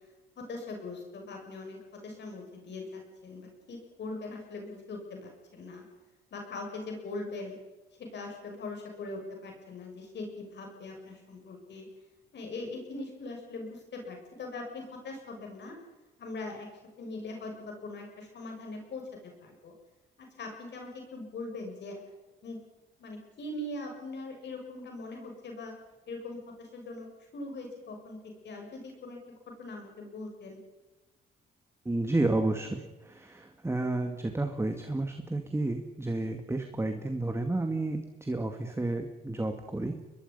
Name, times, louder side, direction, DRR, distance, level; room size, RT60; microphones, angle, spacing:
voice 1, 0.4-5.8 6.3-7.5 8.0-11.9 12.3-15.8 16.2-16.7 17.0-19.7 20.4-22.0 22.4-22.6 23.0-25.7 26.1-27.1 27.3-29.2 29.6-30.6, left 2 dB, 60° left, 2 dB, 6.9 m, -41 dB
voice 2, 31.9-39.9, right 2 dB, 15° right, 5 dB, 2.1 m, -31 dB
23.5 x 21.5 x 5.6 m, 1.1 s
cardioid pair, 90°, 20 cm